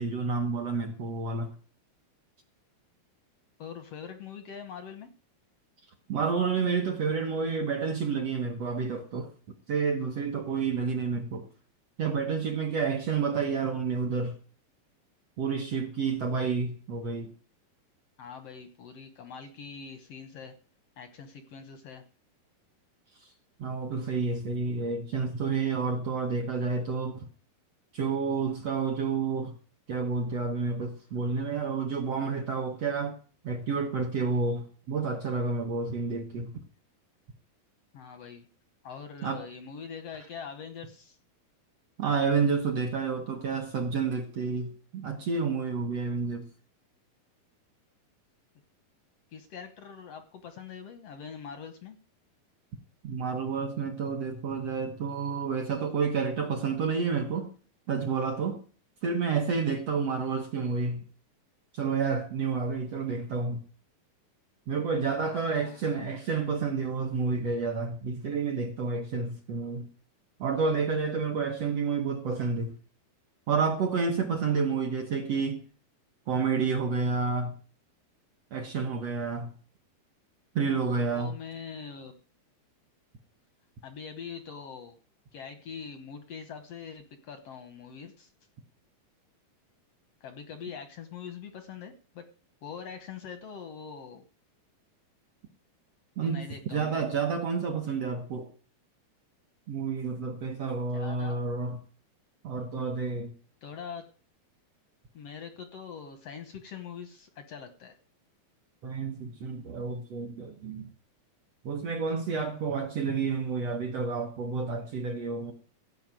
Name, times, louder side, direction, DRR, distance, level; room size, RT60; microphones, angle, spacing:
voice 1, 0.0-1.5 6.1-9.3 9.7-11.4 12.0-14.4 15.4-17.3 23.2-23.3 23.6-27.3 27.9-29.5 29.9-33.1 33.4-36.5 39.2-39.4 42.0-46.5 53.0-57.5 57.9-58.6 59.0-61.0 61.7-63.6 64.7-69.9 70.4-72.7 73.5-75.6 76.3-77.6 78.5-79.5 80.5-81.4 96.2-98.5 99.7-101.8 102.4-103.3 108.8-110.9 111.6-115.5, right 5 dB, 65° right, 1.6 m, -30 dB
voice 2, 3.6-5.1 18.2-20.5 21.0-22.0 37.9-38.5 38.8-41.2 49.3-52.0 65.2-66.4 74.5-74.8 80.8-82.1 83.8-85.0 85.3-88.3 90.2-92.2 92.6-94.2 96.2-97.1 100.9-101.4 103.6-104.0 105.1-107.9, left 6 dB, 75° left, 1.4 m, -43 dB
15.5 x 5.8 x 9.0 m
omnidirectional pair, 4.5 m